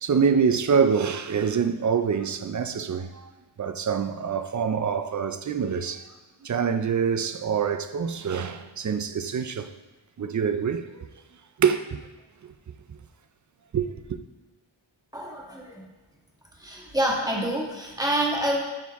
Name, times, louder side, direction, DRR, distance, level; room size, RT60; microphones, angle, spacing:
voice 1, 0.0-3.3 3.6-6.1 6.4-9.7 10.2-11.1 11.6-12.0 12.4-12.5 13.7-14.0, right 6 dB, 40° right, 0.4 m, -25 dB
voice 2, 15.1-15.9 16.6-18.6, right 1 dB, 10° right, 1.4 m, -27 dB
11.5 x 4.4 x 3.5 m
wide cardioid pair, 125°, 48 cm